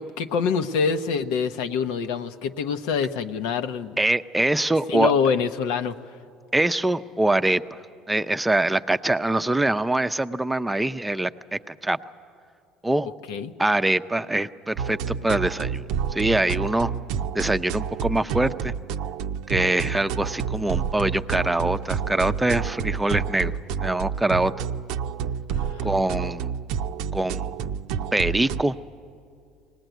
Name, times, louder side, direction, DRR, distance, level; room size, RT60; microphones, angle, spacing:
voice 1, 0.0-4.0 4.9-6.0 13.3-13.5 25.5-25.9, left 6 dB, 75° left, 9 dB, 0.9 m, -25 dB
voice 2, 4.0-5.1 6.5-7.6 8.1-12.0 12.8-13.1 13.6-16.9 17.3-18.7 19.5-23.5 23.8-24.5 25.8-26.5 27.1-27.5 28.1-28.7, right 2 dB, 10° right, 10 dB, 0.6 m, -24 dB
sound 1, 14.7-28.6, right 7 dB, 70° right, 0.6 m, -29 dB
20.5 x 19.0 x 9.2 m, 2.3 s
hypercardioid pair, 80°, 0 cm